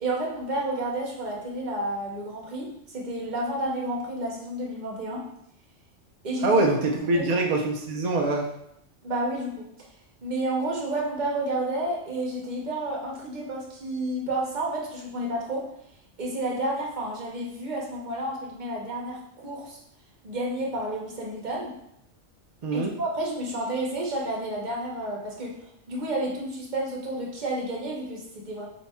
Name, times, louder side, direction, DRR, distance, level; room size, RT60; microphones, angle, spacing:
voice 1, 0.0-5.3 6.2-6.6 7.1-7.2 9.0-9.7 10.2-15.7 16.2-19.8 20.2-21.8 22.7-25.6 25.9-28.7, right 1 dB, 45° right, -2 dB, 0.9 m, -30 dB
voice 2, 6.4-8.5 22.6-22.9, right 2 dB, 65° right, 1 dB, 0.4 m, -24 dB
3.4 x 2.7 x 4.1 m, 0.76 s
omnidirectional pair, 1.3 m